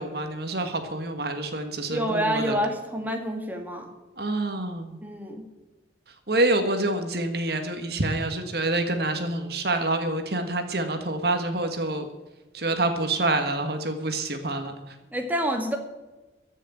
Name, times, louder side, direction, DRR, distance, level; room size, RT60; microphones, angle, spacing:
voice 1, 0.0-2.5 4.2-5.0 6.3-12.1 12.5-14.7, right 2 dB, 60° right, 7 dB, 1.7 m, -27 dB
voice 2, 1.9-3.9 5.0-5.4 15.1-15.8, equal, 10° right, 3 dB, 1.8 m, -27 dB
15.0 x 6.5 x 9.2 m, 1.1 s
head